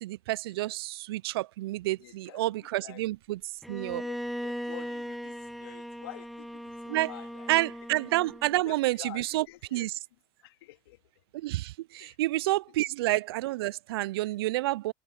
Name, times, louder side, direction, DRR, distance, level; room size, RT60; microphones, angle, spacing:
voice 1, 0.0-3.4 3.7-4.0 6.9-7.1 7.5-9.4 9.7-9.9 11.3-14.9, right 17 dB, 80° right, 0.4 m, -29 dB
voice 2, 2.0-3.0 4.0-7.6 8.6-9.9 10.4-11.0 12.0-12.2, left 17 dB, 75° left, 2.4 m, -48 dB
Bowed string instrument, 3.6-8.6, equal, ahead, 0.5 m, -38 dB
hypercardioid pair, 80°, 13 cm